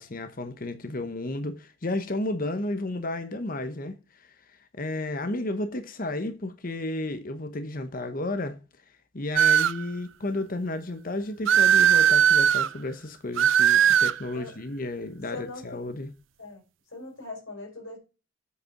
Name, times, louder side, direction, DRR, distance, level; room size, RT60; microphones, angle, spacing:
voice 1, 0.0-8.6 9.1-16.1, left 2 dB, 45° left, 0.9 m, -32 dB
sound 1, 9.4-9.8 11.5-12.7 13.4-14.2, right 9 dB, 65° right, 0.4 m, -19 dB
voice 2, 15.3-15.8 16.4-16.6 16.9-18.0, left 2 dB, 75° left, 4.7 m, -40 dB
8.2 x 4.9 x 5.8 m
head